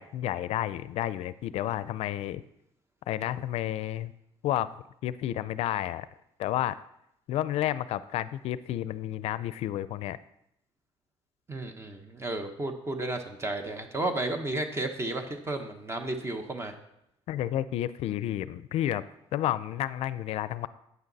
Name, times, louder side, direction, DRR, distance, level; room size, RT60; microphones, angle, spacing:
voice 1, 0.0-2.4 3.1-4.1 4.4-4.7 5.0-6.1 6.4-6.8 7.3-10.2 17.3-19.0 19.3-20.7, left 13 dB, 65° left, 16 dB, 0.5 m, -31 dB
voice 2, 11.5-16.7, right 2 dB, 25° right, 6 dB, 1.1 m, -33 dB
9.4 x 9.0 x 4.1 m, 0.78 s
cardioid pair, 105°, 11 cm